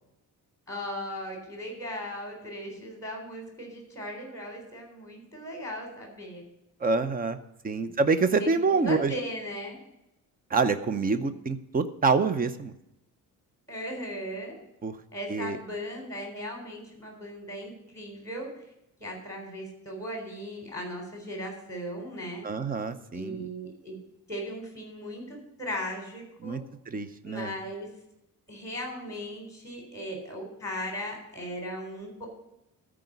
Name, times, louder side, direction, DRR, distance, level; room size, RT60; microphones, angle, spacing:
voice 1, 0.7-6.4 7.7-7.9 8.4-9.8 13.7-14.6 15.1-18.5 19.0-22.4 23.1-24.0 24.3-26.6 27.2-27.9 28.5-32.3, equal, 10° left, 1 dB, 3.8 m, -37 dB
voice 2, 6.8-7.4 7.6-9.1 10.5-12.7 14.8-15.0 15.3-15.6 22.4-23.5 26.4-26.6 26.9-27.5, right 4 dB, 25° right, 11 dB, 0.6 m, -26 dB
13.5 x 5.0 x 8.0 m, 0.84 s
cardioid pair, 160°, 36 cm